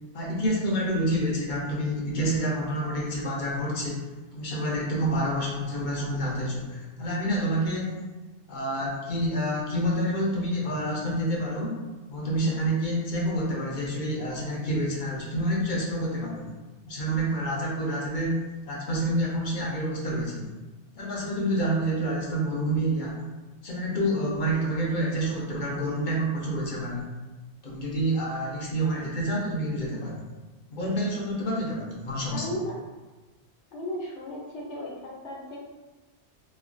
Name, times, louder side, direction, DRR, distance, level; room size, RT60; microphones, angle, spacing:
voice 1, 0.1-4.1 4.3-8.0 8.5-11.8 12.1-16.5 16.9-20.5 21.0-23.2 23.6-27.1 27.6-30.2 30.7-32.5, right 1 dB, 55° left, -3 dB, 0.6 m, -28 dB
voice 2, 32.3-32.7 33.7-35.6, left 1 dB, 75° left, -3 dB, 1.0 m, -36 dB
3.0 x 2.2 x 2.5 m, 1.2 s
omnidirectional pair, 1.2 m